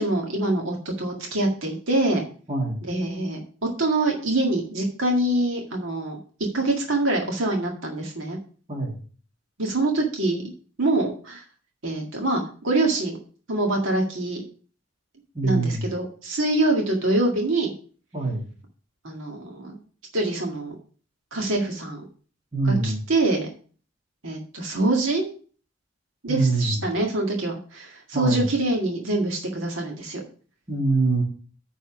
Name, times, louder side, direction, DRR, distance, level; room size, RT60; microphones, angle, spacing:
voice 1, 0.0-2.2 2.8-3.4 3.8-6.2 6.5-8.4 9.6-10.5 10.8-11.4 11.8-13.2 13.5-14.4 15.4-17.7 19.0-19.8 20.1-20.8 21.3-22.0 22.6-23.5 24.2-25.3 26.2-30.2, right 2 dB, 75° right, 0 dB, 1.9 m, -25 dB
voice 2, 2.5-2.8 8.7-8.9 15.3-15.9 18.1-18.5 22.5-23.0 26.3-26.8 28.1-28.5 30.7-31.2, right 3 dB, 30° right, -5 dB, 2.1 m, -24 dB
9.5 x 4.2 x 6.1 m, 0.41 s
head